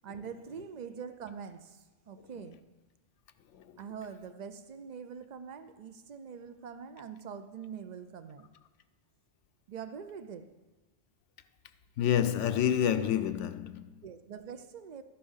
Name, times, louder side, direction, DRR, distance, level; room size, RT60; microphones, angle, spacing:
voice 1, 0.0-2.6 3.8-8.5 9.7-10.6 14.0-15.0, right 7 dB, 45° right, 0.6 m, -44 dB
voice 2, 12.0-14.0, left 9 dB, 85° left, 1.0 m, -28 dB
12.5 x 8.6 x 5.6 m
omnidirectional pair, 1.2 m